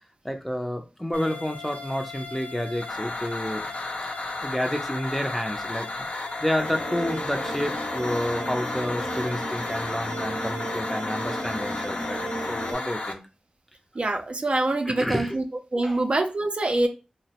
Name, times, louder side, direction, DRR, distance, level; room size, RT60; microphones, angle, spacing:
voice 1, 0.2-3.6 4.4-13.2 14.9-15.4 15.8-16.0, equal, 5° left, 4 dB, 0.5 m, -30 dB
sound 1, 1.1-13.1, left 3 dB, 75° left, 0.4 m, -33 dB
sound 2, 6.6-12.7, equal, 60° left, 1.0 m, -34 dB
voice 2, 14.0-15.4 15.7-16.9, right 2 dB, 55° right, 4 dB, 0.4 m, -25 dB
2.8 x 2.0 x 2.8 m, 0.30 s
cardioid pair, 45°, 2 cm